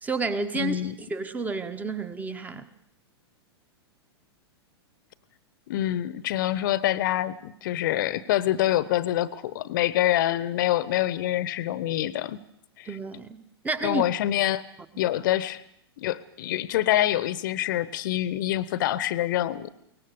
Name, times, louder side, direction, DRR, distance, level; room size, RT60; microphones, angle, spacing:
voice 1, 0.0-2.6 12.8-14.0, right 3 dB, 10° right, 11 dB, 1.4 m, -31 dB
voice 2, 0.5-0.9 5.7-12.4 12.8-13.0 13.8-14.6 15.0-15.6 16.0-19.7, left 13 dB, 50° left, 18 dB, 1.1 m, -26 dB
23.0 x 19.0 x 6.9 m, 0.73 s
figure-of-eight pair, 100°, 14 cm